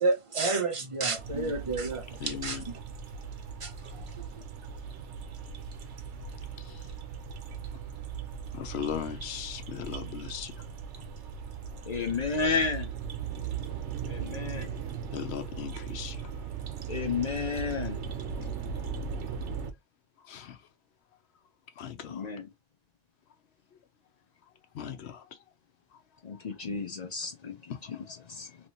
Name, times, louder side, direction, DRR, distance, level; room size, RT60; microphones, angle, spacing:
voice 1, 0.0-2.8 3.6-4.4, right 3 dB, 40° right, 0.5 m, -31 dB
sound 1, 1.2-19.7, right 7 dB, 85° right, 1.0 m, -38 dB
voice 2, 2.2-2.7 6.6-6.9 8.5-10.7 15.1-16.3 18.8-18.9 20.2-20.7 21.8-22.3 24.7-25.4 25.9-26.0 26.3-26.4 27.7-28.1 28.4-28.6, left 8 dB, 70° left, 0.9 m, -39 dB
voice 3, 11.9-12.9 14.1-14.7 16.9-18.0 22.1-22.5 26.2-27.6 28.3-28.5, left 5 dB, 50° left, 0.5 m, -31 dB
3.2 x 2.9 x 2.7 m
omnidirectional pair, 1.2 m